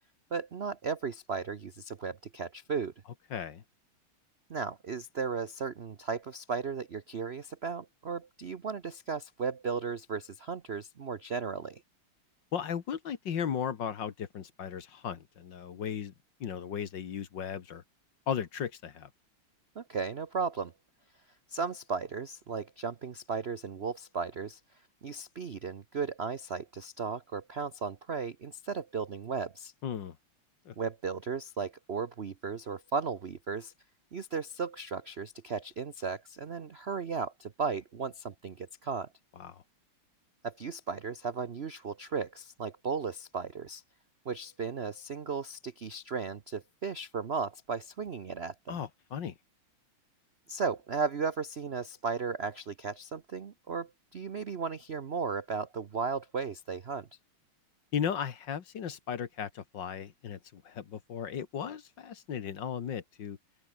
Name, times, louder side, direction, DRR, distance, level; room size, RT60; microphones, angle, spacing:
voice 1, 0.3-2.9 4.5-11.8 19.8-20.7 21.5-24.6 25.0-29.7 30.8-33.7 34.1-39.1 40.4-43.8 44.2-48.8 50.5-57.1, right 5 dB, 60° right, 0.6 m, -35 dB
voice 2, 3.3-3.6 12.5-16.1 16.4-17.8 18.3-19.1 29.8-30.2 30.7-30.8 39.4-39.6 48.7-49.3 57.9-63.4, left 8 dB, 55° left, 2.0 m, -36 dB
open air
omnidirectional pair, 2.4 m